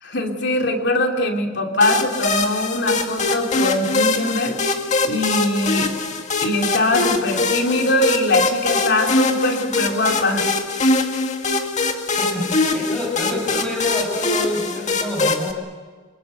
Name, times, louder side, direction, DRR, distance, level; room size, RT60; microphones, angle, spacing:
voice 1, 0.0-5.9 6.4-10.5, left 1 dB, 60° left, 3 dB, 2.8 m, -22 dB
sound 1, 1.8-15.5, left 3 dB, 40° left, 2.0 m, -22 dB
voice 2, 12.2-15.6, left 2 dB, 5° left, -2 dB, 6.6 m, -27 dB
26.0 x 21.5 x 8.1 m, 1.5 s
head